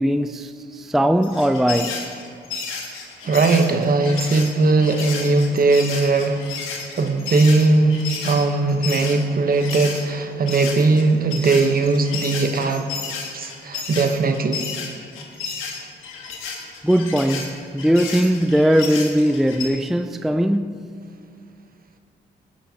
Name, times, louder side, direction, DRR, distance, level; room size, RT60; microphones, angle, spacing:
voice 1, 0.0-2.1 16.8-20.8, equal, ahead, 0.4 m, -20 dB
sound 1, 1.2-10.0 10.5-19.7, left 5 dB, 85° left, 1.6 m, -32 dB
voice 2, 3.2-6.5 6.9-12.9 13.3-14.6, right 3 dB, 45° right, 1.1 m, -19 dB
16.5 x 9.6 x 2.9 m
supercardioid pair, 55°, 21 cm